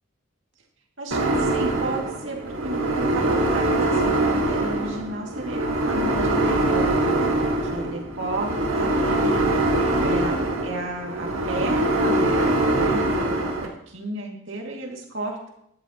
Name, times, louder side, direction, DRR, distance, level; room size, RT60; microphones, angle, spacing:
voice 1, 1.0-2.4 2.6-10.3 10.6-15.5, right 2 dB, 60° right, -1 dB, 2.3 m, -33 dB
sound 1, 1.1-13.7, right 1 dB, 80° right, 1.8 m, -23 dB
13.0 x 11.0 x 3.0 m, 0.74 s
head